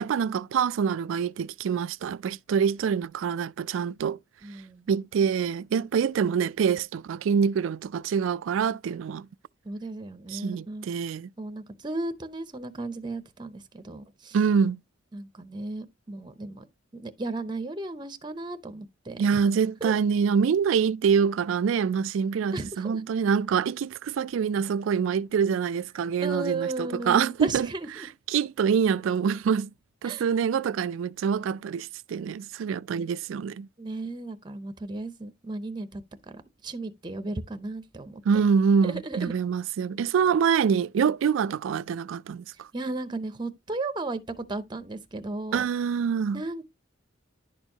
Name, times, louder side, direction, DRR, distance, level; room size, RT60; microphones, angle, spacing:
voice 1, 0.0-4.2 4.9-9.3 10.3-11.3 14.3-14.8 19.2-27.7 28.0-29.7 30.0-33.7 38.3-42.7 45.5-46.4, right 6 dB, 80° right, 0.3 m, -25 dB
voice 2, 4.4-4.9 9.6-10.9 11.4-14.4 15.1-16.6 16.9-19.4 19.8-19.9 22.5-23.0 26.2-28.1 30.0-30.3 33.8-36.0 36.3-38.2 38.8-39.3 42.7-45.7 46.3-46.7, right 2 dB, 25° right, 0.7 m, -35 dB
11.0 x 4.5 x 2.8 m
head